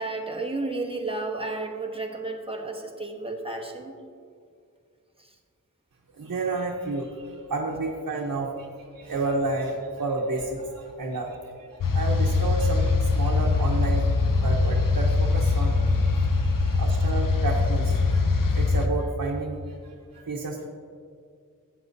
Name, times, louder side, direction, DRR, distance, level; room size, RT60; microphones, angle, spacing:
voice 1, 0.0-3.9 5.2-5.3, right 2 dB, 15° right, 1 dB, 1.1 m, -32 dB
voice 2, 6.2-8.7 8.9-14.1 14.4-20.6, right 3 dB, 70° right, -2 dB, 0.9 m, -31 dB
sound 1, 11.8-18.9, left 3 dB, 70° left, 0.7 m, -22 dB
13.0 x 8.1 x 2.7 m, 2.2 s
wide cardioid pair, 75°, 34 cm